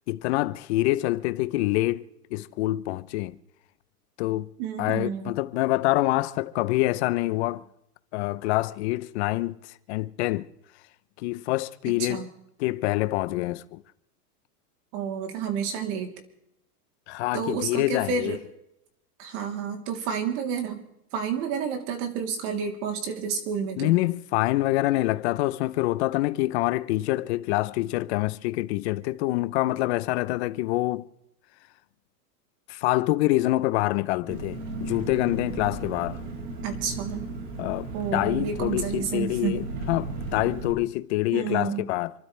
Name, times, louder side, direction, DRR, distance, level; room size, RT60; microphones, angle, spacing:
voice 1, 0.1-2.1 2.3-3.3 4.2-4.5 4.8-7.6 8.1-9.6 9.9-10.5 11.2-12.3 12.6-13.8 17.1-18.3 23.8-31.1 32.7-36.2 37.6-39.6 39.9-42.1, left 18 dB, 45° left, 0.8 m, -26 dB
voice 2, 4.6-5.3 11.8-12.3 14.9-16.1 17.3-18.4 19.2-20.8 21.1-23.9 36.6-37.3 37.9-39.6 41.3-41.8, right 6 dB, 45° right, 3.4 m, -30 dB
Engine, 34.3-40.7, right 3 dB, 85° right, 5.9 m, -35 dB
28.5 x 12.5 x 3.4 m
supercardioid pair, 150°, 47 cm